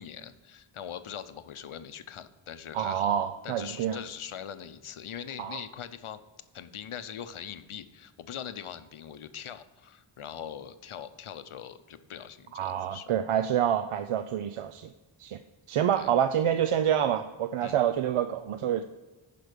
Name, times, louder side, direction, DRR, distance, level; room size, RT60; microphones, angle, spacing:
voice 1, 0.0-3.1 3.4-6.2 6.5-13.1 16.0-16.1 17.6-17.8, left 9 dB, 75° left, 12 dB, 0.7 m, -42 dB
voice 2, 2.7-4.0 5.4-5.6 12.5-14.9 15.2-15.4 15.7-18.8, right 9 dB, 85° right, 9 dB, 0.5 m, -27 dB
11.0 x 5.1 x 5.1 m, 1.2 s
wide cardioid pair, 65°, 49 cm